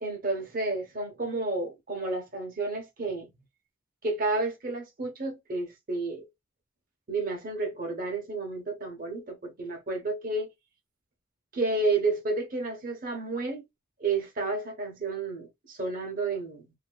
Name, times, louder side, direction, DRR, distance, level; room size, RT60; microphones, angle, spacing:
voice 1, 0.0-3.3 4.0-6.3 7.1-10.5 11.5-13.6 14.0-16.7, right 3 dB, 45° right, 1.0 m, -31 dB
2.7 x 2.7 x 2.2 m
head